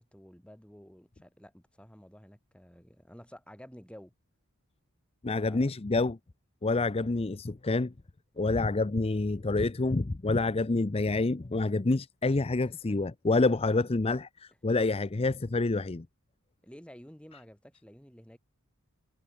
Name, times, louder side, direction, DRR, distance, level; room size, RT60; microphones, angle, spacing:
voice 1, 0.0-4.1 5.3-5.7 16.6-18.4, equal, 5° left, 3.1 m, -51 dB
voice 2, 5.2-6.2 6.6-7.9 8.4-16.1, left 3 dB, 25° left, 0.5 m, -27 dB
head